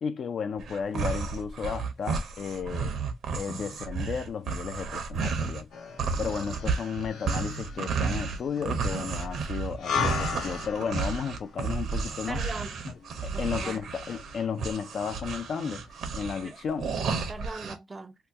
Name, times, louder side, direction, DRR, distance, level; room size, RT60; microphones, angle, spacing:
voice 1, 0.0-2.9 3.3-5.7 6.2-12.4 12.9-13.0 13.2-16.9, left 6 dB, 55° left, 0.4 m, -33 dB
sound 1, 0.6-5.6 6.0-17.8, right 5 dB, 70° right, 0.8 m, -32 dB
sound 2, 5.7-15.2 15.5-15.6, left 6 dB, 75° left, 0.9 m, -38 dB
voice 2, 12.3-12.8 13.3-13.8 16.4-16.6 17.3-18.1, right 3 dB, 25° right, 0.4 m, -40 dB
2.8 x 2.2 x 3.4 m
cardioid pair, 90°, 0 cm